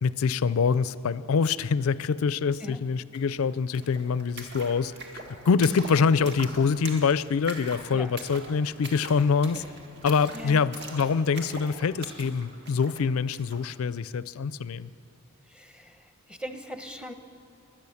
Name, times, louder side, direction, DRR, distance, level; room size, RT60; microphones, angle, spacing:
voice 1, 0.0-4.9 5.5-9.7 10.0-14.9, left 5 dB, 65° left, 17 dB, 0.4 m, -25 dB
sound 1, 3.1-3.2 3.4-13.6, right 2 dB, 50° right, 2.0 m, -43 dB
voice 2, 10.3-10.6 15.5-17.1, left 1 dB, 5° right, 6 dB, 0.8 m, -40 dB
22.5 x 9.0 x 7.1 m, 2.6 s
head